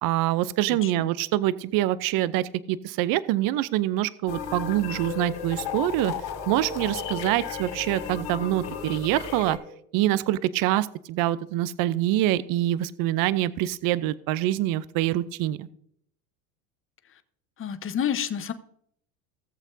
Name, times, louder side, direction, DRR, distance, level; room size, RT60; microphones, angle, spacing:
voice 1, 0.0-6.1 6.5-9.6 9.9-15.7, right 14 dB, 50° right, 17 dB, 0.6 m, -25 dB
voice 2, 0.7-1.1 17.0-17.2 17.6-18.5, left 9 dB, 25° left, 11 dB, 0.9 m, -30 dB
sound 1, 4.3-9.6, left 7 dB, 55° left, 3.7 m, -34 dB
18.0 x 7.1 x 2.7 m, 0.68 s
supercardioid pair, 100°, 47 cm